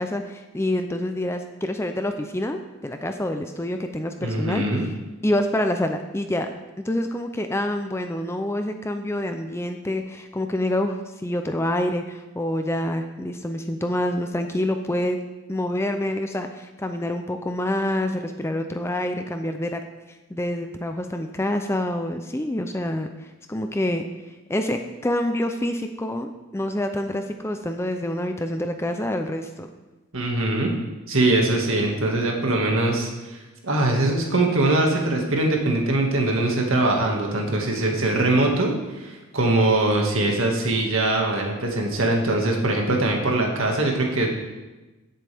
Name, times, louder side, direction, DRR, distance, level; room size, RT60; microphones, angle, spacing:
voice 1, 0.0-4.9 5.2-15.2 15.5-19.8 20.3-23.1 23.5-29.7, left 1 dB, 10° left, 6 dB, 0.5 m, -27 dB
voice 2, 4.2-4.9 30.1-30.7 31.1-33.4 33.6-44.3, right 2 dB, 65° right, 0 dB, 1.9 m, -22 dB
16.5 x 7.7 x 3.5 m, 1.1 s
head